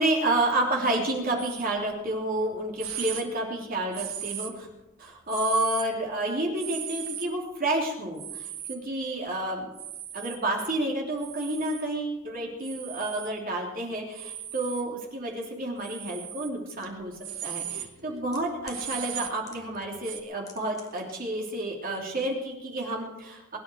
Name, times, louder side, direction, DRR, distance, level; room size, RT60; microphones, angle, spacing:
voice 1, 0.0-4.7 5.0-9.7 10.1-17.1 17.4-23.6, right 1 dB, 40° right, -1 dB, 3.2 m, -30 dB
sound 1, 1.4-1.7 2.3-2.4 2.8-3.2 3.9-4.7 5.3-5.9 6.6-7.2 8.2-8.8 9.7-10.4 11.2-11.8 12.6-13.3 14.1-14.8 15.8-16.5 17.0-20.2, right 10 dB, 70° right, 1.3 m, -37 dB
sound 2, 16.8-16.9 17.9-18.8 19.5-19.9 20.1-21.2 21.4-21.5, left 4 dB, 15° left, 1.7 m, -47 dB
23.0 x 10.5 x 4.6 m, 0.99 s
head